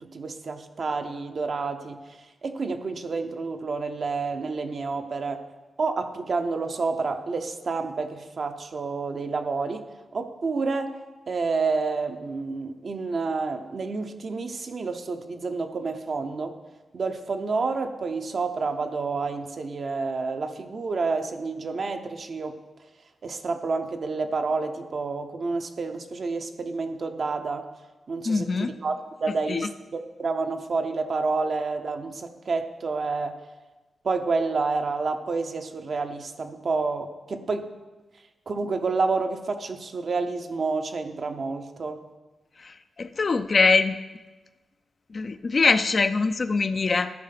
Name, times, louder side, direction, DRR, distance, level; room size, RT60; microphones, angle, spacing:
voice 1, 0.0-2.0 2.4-5.4 5.8-9.8 10.1-11.0 11.3-16.5 16.9-22.5 23.2-27.7 28.1-33.3 34.0-37.7 38.5-42.0, right 4 dB, 60° right, 6 dB, 0.8 m, -29 dB
voice 2, 28.3-28.7 29.5-29.7 43.0-44.0 45.1-47.1, left 4 dB, 50° left, 10 dB, 0.5 m, -22 dB
13.5 x 4.7 x 5.9 m, 1.2 s
cardioid pair, 70°, 0 cm